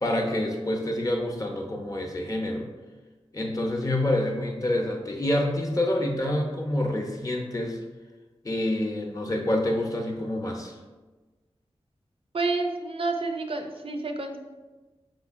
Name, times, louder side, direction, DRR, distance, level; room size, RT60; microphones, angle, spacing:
voice 1, 0.0-2.7 3.3-7.8 8.4-10.8, left 1 dB, 35° left, 1 dB, 0.7 m, -27 dB
voice 2, 12.3-14.4, right 3 dB, 60° right, 4 dB, 0.5 m, -29 dB
5.4 x 3.7 x 2.5 m, 1.2 s
wide cardioid pair, 80°, 11 cm